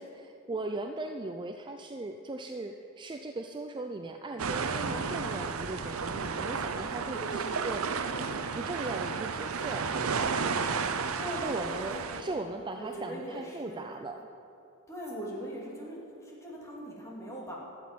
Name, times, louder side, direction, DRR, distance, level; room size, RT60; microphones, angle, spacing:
voice 1, 0.0-7.8 8.5-10.3 11.4-14.3, right 2 dB, 20° right, 5 dB, 0.4 m, -38 dB
sound 1, 4.4-12.2, right 5 dB, 70° right, 0.7 m, -32 dB
voice 2, 7.1-8.4 11.2-13.9 14.9-17.5, right 1 dB, 15° left, -4 dB, 2.5 m, -41 dB
12.5 x 7.3 x 9.1 m, 2.7 s
head